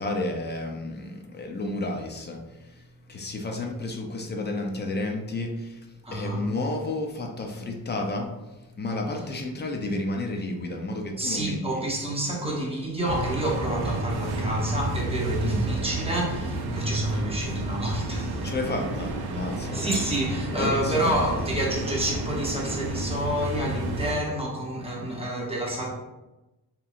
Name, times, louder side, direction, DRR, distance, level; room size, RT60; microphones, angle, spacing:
voice 1, 0.0-11.8 15.4-15.6 18.4-19.9 20.5-21.2, left 2 dB, 30° left, 2 dB, 0.4 m, -31 dB
voice 2, 6.0-6.4 11.2-18.5 19.6-25.9, right 1 dB, 15° right, -2 dB, 0.6 m, -28 dB
sound 1, 13.0-24.1, right 2 dB, 75° right, 0.5 m, -31 dB
2.9 x 2.6 x 2.4 m, 1.0 s
cardioid pair, 100°, 38 cm